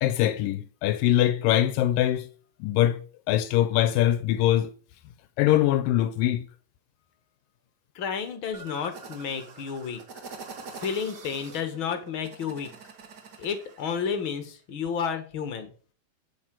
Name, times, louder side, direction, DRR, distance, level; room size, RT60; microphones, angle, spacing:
voice 1, 0.0-2.3 2.6-3.0 3.3-4.7 5.4-6.5, left 13 dB, 80° left, 2.3 m, -23 dB
voice 2, 7.9-10.0 10.8-12.7 13.4-15.7, left 6 dB, 50° left, 1.7 m, -31 dB
sound 1, 8.5-14.1, right 4 dB, 55° right, 1.1 m, -45 dB
8.6 x 6.8 x 7.6 m
omnidirectional pair, 4.0 m